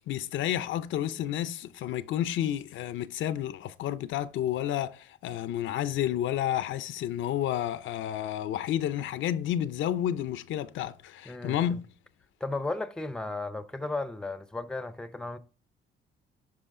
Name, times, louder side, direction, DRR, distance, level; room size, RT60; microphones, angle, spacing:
voice 1, 0.1-11.8, left 11 dB, 75° left, 0.5 m, -30 dB
voice 2, 11.3-11.8 12.4-15.4, left 2 dB, 5° left, 0.5 m, -35 dB
10.5 x 5.1 x 3.7 m
cardioid pair, 90°, 20 cm